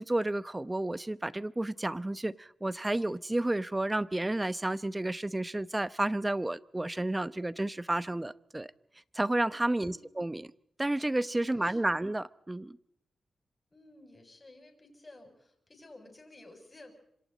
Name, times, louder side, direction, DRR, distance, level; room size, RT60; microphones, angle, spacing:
voice 1, 0.0-8.7 9.1-10.5 10.8-12.8, right 1 dB, 20° right, 0.9 m, -31 dB
voice 2, 9.6-10.1 11.4-12.0 13.7-16.9, left 2 dB, 30° left, 7.5 m, -54 dB
27.0 x 26.0 x 4.2 m
cardioid pair, 65°, 0 cm